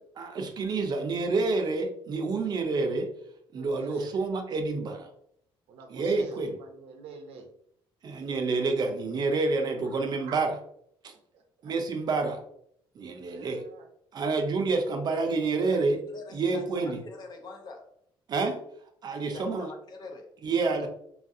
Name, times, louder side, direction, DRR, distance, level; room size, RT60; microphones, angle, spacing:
voice 1, 0.2-3.1 3.5-5.1 5.9-6.6 8.0-10.5 11.0-11.1 11.6-12.4 13.0-13.6 14.1-16.0 16.3-17.0 18.3-18.6 19.0-19.7 20.4-20.9, right 3 dB, 45° right, 4 dB, 0.5 m, -28 dB
voice 2, 3.5-4.3 5.7-7.5 8.1-8.6 9.8-10.4 11.1-11.7 13.2-13.9, right 5 dB, 85° right, 4 dB, 0.6 m, -48 dB
voice 3, 16.1-17.9 19.2-20.4 20.8-20.9, left 3 dB, 45° left, 3 dB, 0.6 m, -44 dB
3.2 x 2.4 x 2.6 m, 0.69 s
cardioid pair, 130°, 10 cm